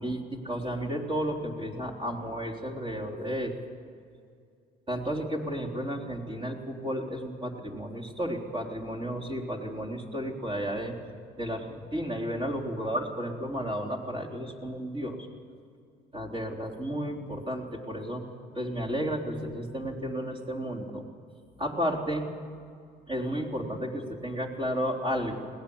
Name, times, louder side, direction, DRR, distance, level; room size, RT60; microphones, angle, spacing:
voice 1, 0.0-3.5 4.9-10.9 11.4-15.3 16.1-18.3 18.5-21.0 21.6-22.3 23.1-25.5, equal, 30° right, 1 dB, 3.9 m, -32 dB
22.5 x 18.0 x 7.3 m, 2.2 s
cardioid pair, 110°, 17 cm